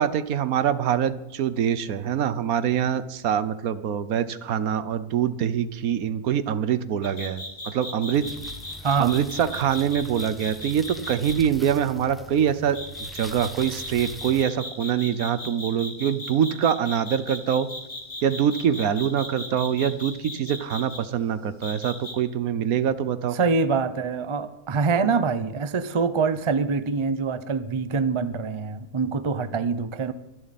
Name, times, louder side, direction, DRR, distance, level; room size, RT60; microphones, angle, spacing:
voice 1, 0.0-8.3 9.0-12.8 13.1-17.7 18.2-23.4, right 9 dB, 70° right, 14 dB, 1.2 m, -24 dB
sound 1, 7.0-11.3 12.7-21.0 21.6-22.1, left 1 dB, 50° left, 3.9 m, -36 dB
sound 2, 8.1-14.4, left 1 dB, ahead, 1.3 m, -43 dB
voice 2, 8.8-9.1 23.3-30.1, right 5 dB, 35° right, 13 dB, 0.5 m, -25 dB
24.5 x 11.0 x 4.2 m, 0.98 s
omnidirectional pair, 1.6 m